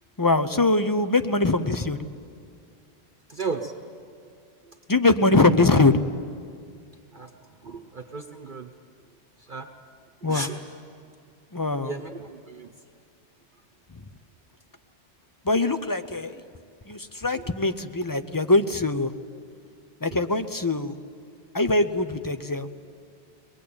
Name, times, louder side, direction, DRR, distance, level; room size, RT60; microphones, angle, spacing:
voice 1, 0.2-2.0 4.9-6.1 10.2-10.5 11.5-12.0 15.5-16.3 16.9-19.1 20.0-20.9 21.5-22.7, left 2 dB, 25° left, 10 dB, 0.5 m, -22 dB
voice 2, 3.3-3.7 7.1-7.3 7.6-8.7 9.5-9.7 10.3-10.5 11.8-12.7, right 4 dB, 45° right, 4 dB, 1.1 m, -34 dB
23.0 x 21.0 x 8.7 m, 2.3 s
omnidirectional pair, 1.2 m